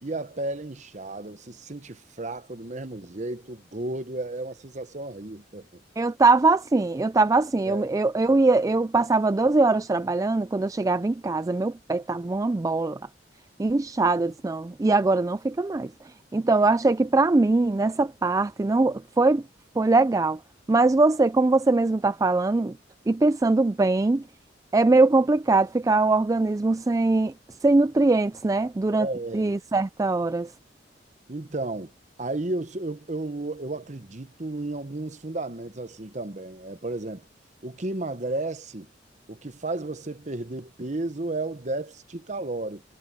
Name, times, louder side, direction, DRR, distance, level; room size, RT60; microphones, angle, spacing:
voice 1, 0.0-5.8 7.6-7.9 29.0-29.6 31.3-31.9 32.2-37.3 37.6-38.9 39.3-42.8, right 2 dB, 40° right, 1.1 m, -33 dB
voice 2, 6.0-13.0 13.6-15.9 16.3-19.4 19.8-20.4 20.7-22.7 23.1-24.2 24.7-27.3 27.6-29.1 29.3-30.5, right 3 dB, 20° right, 0.3 m, -22 dB
head